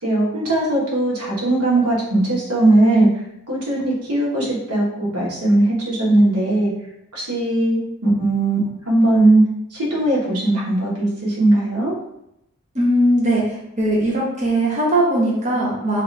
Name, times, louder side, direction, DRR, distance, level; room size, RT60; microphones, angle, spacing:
voice 1, 0.0-3.1 3.5-6.7 7.1-8.6 8.8-9.4 9.7-11.9, right 2 dB, 85° right, -5 dB, 1.2 m, -18 dB
voice 2, 12.7-16.0, right 1 dB, 30° right, -5 dB, 0.8 m, -19 dB
2.8 x 2.4 x 3.2 m, 0.80 s
head